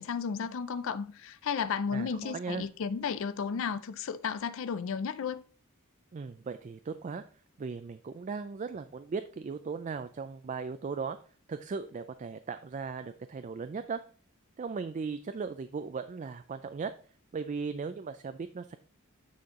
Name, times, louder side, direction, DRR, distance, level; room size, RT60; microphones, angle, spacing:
voice 1, 0.0-5.4, left 6 dB, 65° left, 0.4 m, -33 dB
voice 2, 1.9-2.6 6.1-7.2 7.6-11.2 11.5-14.0 14.6-16.9 17.3-18.8, right 5 dB, 35° right, 0.3 m, -37 dB
9.4 x 4.3 x 3.6 m
head